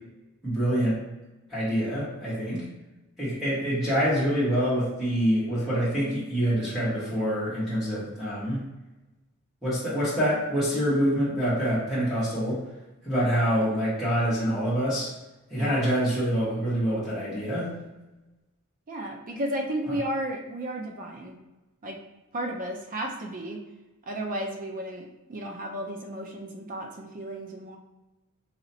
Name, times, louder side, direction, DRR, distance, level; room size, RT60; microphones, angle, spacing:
voice 1, 0.4-1.0 1.5-2.6 3.2-8.6 9.6-12.6 13.0-15.1 15.5-17.7, equal, ahead, -11 dB, 1.3 m, -26 dB
voice 2, 15.6-15.9 18.9-21.4 21.8-22.0 22.3-23.6 24.1-27.8, right 1 dB, 40° right, 1 dB, 0.5 m, -33 dB
4.2 x 3.0 x 2.7 m, 1.1 s
head